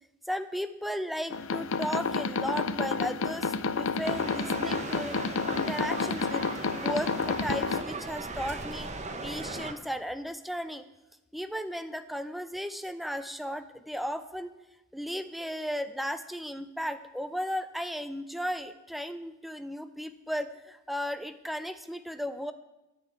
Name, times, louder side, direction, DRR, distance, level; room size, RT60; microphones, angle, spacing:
voice 1, 0.3-5.2 5.5-8.9 9.2-10.9 11.3-14.5 14.9-22.5, equal, ahead, 11 dB, 0.5 m, -35 dB
sound 1, 1.3-7.8, left 4 dB, 65° left, 0.6 m, -30 dB
sound 2, 4.0-9.7, right 3 dB, 35° right, 1.0 m, -38 dB
11.0 x 6.3 x 9.2 m, 0.99 s
head